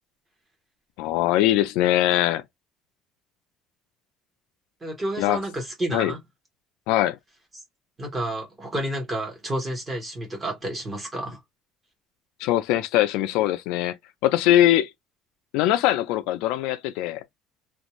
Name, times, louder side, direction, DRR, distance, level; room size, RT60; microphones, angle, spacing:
voice 1, 1.0-2.4 5.2-5.4 5.9-6.1 6.9-7.2 12.4-14.0 14.2-14.9 15.5-17.2, left 14 dB, 85° left, 0.4 m, -21 dB
voice 2, 4.8-6.2 8.0-11.4, right 1 dB, 15° right, 1.1 m, -30 dB
2.6 x 2.3 x 2.9 m
cardioid pair, 175°, 0 cm